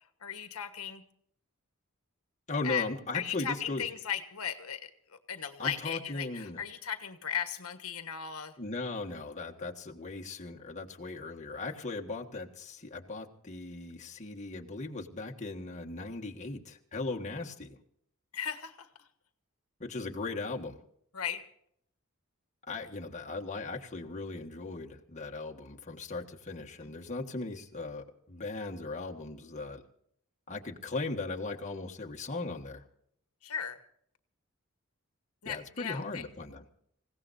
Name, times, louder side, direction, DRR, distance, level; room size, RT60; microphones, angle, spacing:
voice 1, 0.2-1.0 2.6-2.9 3.1-8.5 18.3-18.9 21.1-21.4 26.8-26.9 33.4-33.8 35.4-36.2, left 8 dB, 85° left, 8 dB, 1.4 m, -36 dB
voice 2, 2.5-3.9 5.6-6.6 8.6-17.8 19.8-20.8 22.7-29.8 30.5-32.8 35.5-36.6, left 3 dB, 35° left, 0 dB, 1.7 m, -38 dB
27.5 x 17.0 x 2.7 m, 0.69 s
head